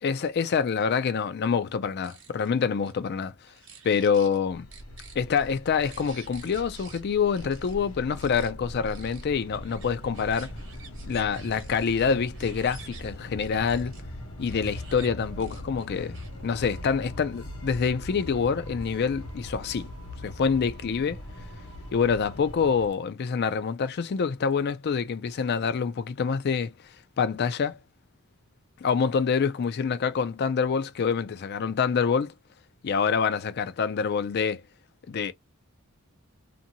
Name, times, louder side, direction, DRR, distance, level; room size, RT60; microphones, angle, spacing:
voice 1, 0.0-3.3 3.8-4.7 5.2-10.5 11.1-14.0 14.4-16.2 16.4-19.9 20.2-21.2 21.9-26.7 27.2-27.8 28.8-32.3 32.8-34.6 35.1-35.3, left 6 dB, 50° left, 0.4 m, -26 dB
sound 1, 1.8-2.5 2.8-2.9 3.5-4.4 4.7-7.0 7.3-7.7 8.2-8.5 8.9-14.0 14.5-15.1 15.4-16.4, right 6 dB, 60° right, 1.0 m, -50 dB
sound 2, 4.5-22.9, left 1 dB, 80° left, 1.1 m, -41 dB
2.6 x 2.6 x 2.7 m
head